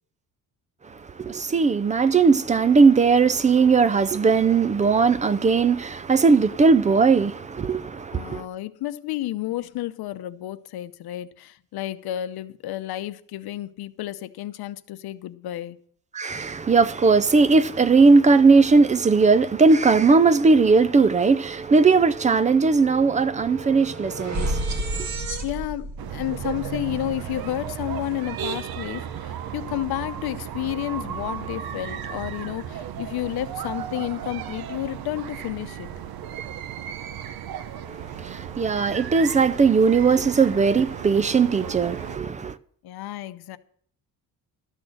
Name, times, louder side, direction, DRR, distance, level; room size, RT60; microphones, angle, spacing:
voice 1, 0.9-8.4 16.1-25.1 37.9-42.6, right 4 dB, 20° right, 0.4 m, -19 dB
voice 2, 8.1-15.8 25.4-35.9 42.8-43.6, left 14 dB, 85° left, 0.8 m, -31 dB
sound 1, 21.3-21.4 21.6-27.9, right 1 dB, 50° right, 1.5 m, -33 dB
sound 2, 26.0-42.2, right 9 dB, 75° right, 0.8 m, -35 dB
13.0 x 6.4 x 7.6 m
cardioid pair, 145°, 37 cm